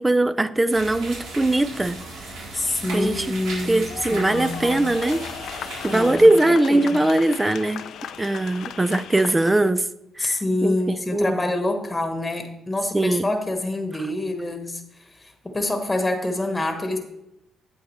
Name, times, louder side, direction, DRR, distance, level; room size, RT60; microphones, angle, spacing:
voice 1, 0.0-2.0 2.9-3.3 3.6-5.2 5.5-7.8 8.2-9.8 10.2-11.5 12.9-13.3, right 2 dB, 15° right, 14 dB, 0.5 m, -21 dB
sound 1, 0.7-6.1, right 2 dB, 90° right, 3.5 m, -36 dB
voice 2, 2.5-3.8 4.1-4.8 5.9-7.0 10.2-17.0, left 2 dB, 20° left, 5 dB, 1.4 m, -26 dB
sound 2, 3.8-9.7, left 9 dB, 75° left, 0.5 m, -36 dB
8.8 x 8.5 x 3.3 m, 0.87 s
cardioid pair, 90°, 0 cm